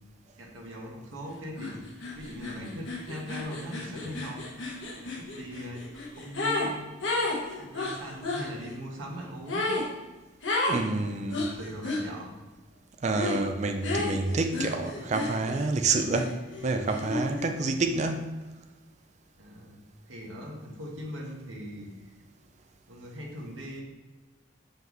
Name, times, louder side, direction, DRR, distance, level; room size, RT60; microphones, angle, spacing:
voice 1, 0.4-4.5 4.9-5.8 6.1-6.8 7.6-9.7 10.7-12.4 19.4-19.8 20.1-21.9 22.9-23.8, equal, 85° right, -2 dB, 1.3 m, -40 dB
sound 1, 1.6-1.7 2.0-6.7 7.0-8.5 9.5-9.9 10.4-10.8 11.3-12.0 13.1-13.4 13.8-15.7 16.1-17.5, left 2 dB, 70° left, 1.2 m, -32 dB
voice 2, 10.7-11.4 13.0-16.4 16.6-18.4, right 3 dB, 35° right, 5 dB, 0.4 m, -28 dB
5.7 x 5.4 x 3.1 m, 1.2 s
head